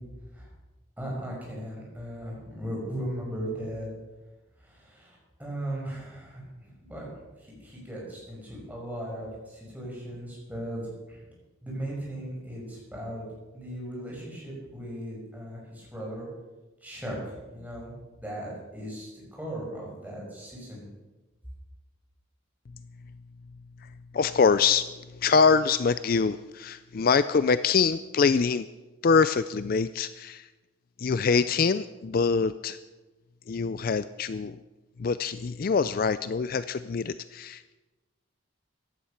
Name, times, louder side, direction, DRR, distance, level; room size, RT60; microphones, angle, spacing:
voice 1, 1.0-3.9 4.6-7.1 7.4-10.8 11.1-11.2 11.6-13.2 13.5-16.3 16.8-20.9, right 1 dB, 10° right, -4 dB, 5.6 m, -37 dB
voice 2, 24.1-24.9 25.2-28.7 29.0-30.5 31.0-32.8 33.5-34.6 35.0-37.7, left 5 dB, 45° left, 14 dB, 0.4 m, -24 dB
15.5 x 11.5 x 5.8 m, 1.1 s
head